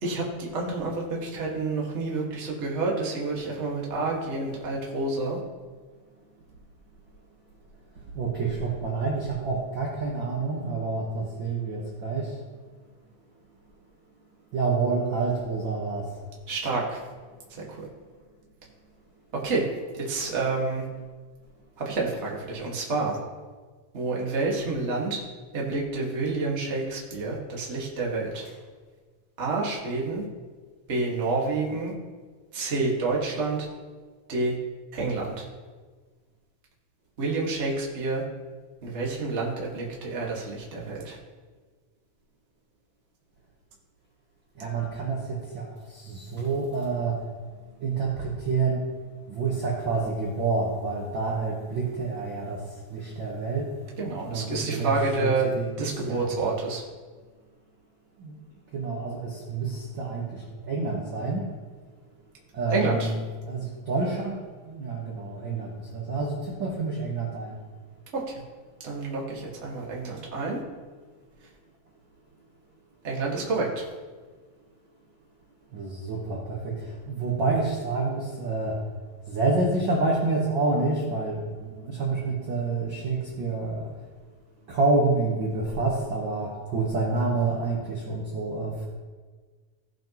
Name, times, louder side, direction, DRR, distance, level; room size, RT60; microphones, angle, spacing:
voice 1, 0.0-5.4 16.5-17.0 17.5-17.9 19.3-19.7 19.9-20.8 21.8-23.2 23.9-25.2 25.5-28.4 29.4-30.2 30.9-31.9 32.5-33.7 34.3-34.6 34.9-35.5 37.2-38.2 38.8-41.2 54.0-55.5 55.8-56.8 62.7-63.1 68.1-68.4 68.8-70.6 73.0-73.8, right 3 dB, 30° right, -3 dB, 1.5 m, -28 dB
voice 2, 8.1-12.4 14.5-16.2 44.6-47.2 47.8-48.8 49.3-53.7 54.3-54.9 55.2-55.3 55.5-55.7 56.0-56.3 58.2-58.3 58.7-61.5 62.5-63.2 63.4-64.4 64.6-67.6 75.7-78.8 79.3-83.9 84.7-88.9, right 3 dB, 55° right, -3 dB, 1.5 m, -28 dB
16.5 x 6.0 x 3.0 m, 1.4 s
omnidirectional pair, 3.5 m